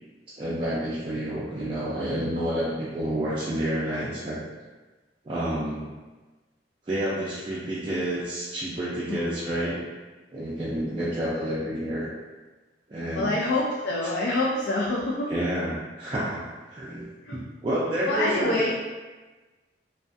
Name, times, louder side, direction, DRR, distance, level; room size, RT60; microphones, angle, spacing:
voice 1, 0.3-4.4 5.2-5.9 6.9-9.8 10.3-12.1 12.9-13.4 15.3-16.4 16.7-17.0 17.3-18.7, right 1 dB, 30° right, -9 dB, 0.3 m, -29 dB
voice 2, 9.1-9.4 13.1-15.3 17.2-17.4 18.1-18.7, left 2 dB, 65° left, -4 dB, 0.3 m, -26 dB
2.4 x 2.2 x 2.4 m, 1.2 s
head